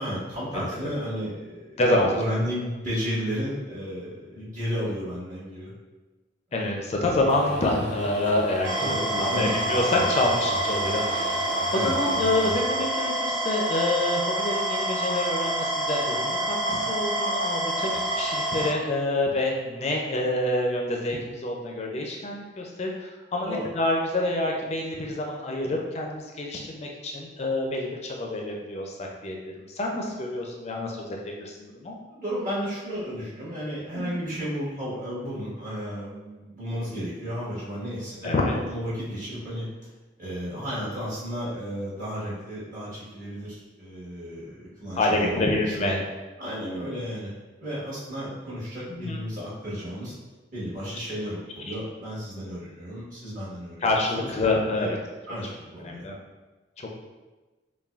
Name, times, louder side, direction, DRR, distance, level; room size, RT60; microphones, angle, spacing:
voice 1, 0.0-5.7 6.5-6.7 8.8-9.5 11.5-12.0 23.4-23.7 32.1-39.7 40.2-46.0 46.4-47.3 47.6-50.1 50.5-53.9 54.2-54.3 54.7-54.9 55.3-56.1, equal, 45° right, -9 dB, 1.4 m, -33 dB
voice 2, 1.8-2.2 6.5-11.5 11.7-32.0 33.9-34.2 38.2-38.5 44.9-46.0 48.9-49.2 51.1-51.3 51.7-51.8 53.8-54.9 55.8-56.1 56.8-56.9, left 2 dB, 35° left, 0 dB, 0.4 m, -27 dB
sound 1, 7.3-12.5, right 1 dB, 60° right, 0.6 m, -36 dB
sound 2, 8.6-18.7, right 1 dB, 75° right, 1.1 m, -27 dB
5.5 x 2.2 x 2.4 m, 1.2 s
head